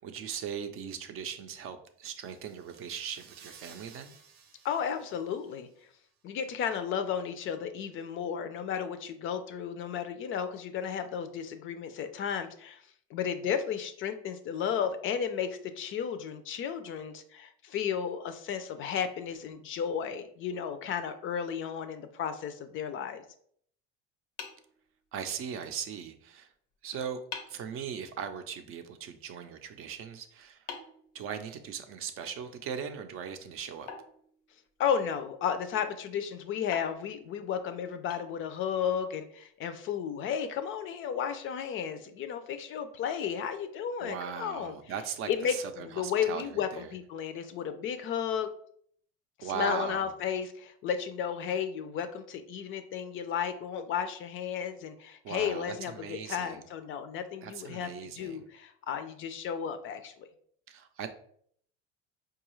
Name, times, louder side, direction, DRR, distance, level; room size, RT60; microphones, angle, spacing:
voice 1, 0.0-4.1 25.1-26.5 26.8-27.2 27.5-30.7 31.1-33.9 44.0-46.9 49.4-50.1 55.2-56.6 57.4-58.5 60.7-61.1, right 7 dB, 50° right, 8 dB, 0.5 m, -39 dB
sound 1, 2.0-5.9, right 6 dB, 90° right, 0.7 m, -57 dB
voice 2, 4.6-5.7 6.2-12.8 13.1-23.2 34.8-44.7 45.3-48.5 49.4-60.3, left 8 dB, 45° left, 9 dB, 0.4 m, -33 dB
sound 2, 24.4-25.5 26.7-26.8 27.3-27.7 30.7-31.9 33.9-35.0 36.7-38.8, left 6 dB, 90° left, 0.7 m, -46 dB
4.6 x 2.3 x 3.0 m, 0.63 s
supercardioid pair, 110°, 29 cm